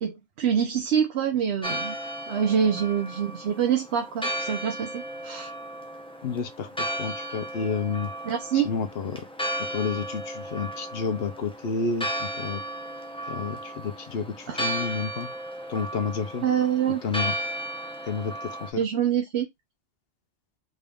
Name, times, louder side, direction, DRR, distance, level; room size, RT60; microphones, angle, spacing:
voice 1, 0.0-1.9 2.3-5.5 8.3-8.7 14.5-14.8 16.4-17.0 18.8-19.5, right 8 dB, 70° right, 1.0 m, -25 dB
Church bell, 1.6-18.7, right 1 dB, 5° left, 0.4 m, -35 dB
voice 2, 6.2-8.1 8.5-9.2 9.6-12.6 13.3-15.3 15.7-16.5 17.0-17.3 18.0-18.8, left 5 dB, 60° left, 0.9 m, -30 dB
3.9 x 2.5 x 3.4 m
omnidirectional pair, 1.2 m